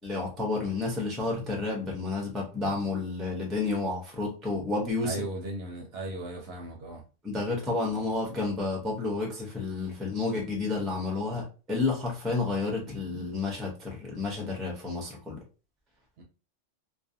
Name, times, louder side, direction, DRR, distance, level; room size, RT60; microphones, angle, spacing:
voice 1, 0.0-5.2 7.2-15.4, left 3 dB, ahead, 0.4 m, -30 dB
voice 2, 5.0-7.0 16.2-16.3, right 1 dB, 60° right, 0.7 m, -37 dB
2.4 x 2.3 x 2.6 m
omnidirectional pair, 1.3 m